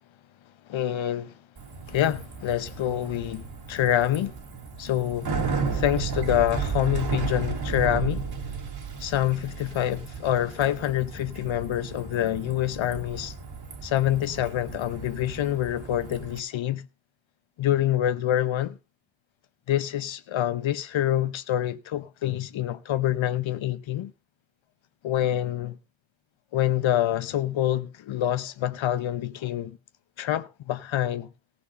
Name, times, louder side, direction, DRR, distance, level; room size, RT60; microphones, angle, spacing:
voice 1, 0.7-1.3 1.9-4.4 4.8-5.4 5.7-8.3 9.0-13.3 13.8-16.9 17.6-18.8 19.7-24.1 25.0-25.8 26.5-29.8 30.2-31.3, left 12 dB, 85° left, 0.9 m, -26 dB
Bicycle, 1.6-16.4, right 5 dB, 55° right, 3.1 m, -34 dB
15.5 x 6.2 x 6.8 m
wide cardioid pair, 110°, 45 cm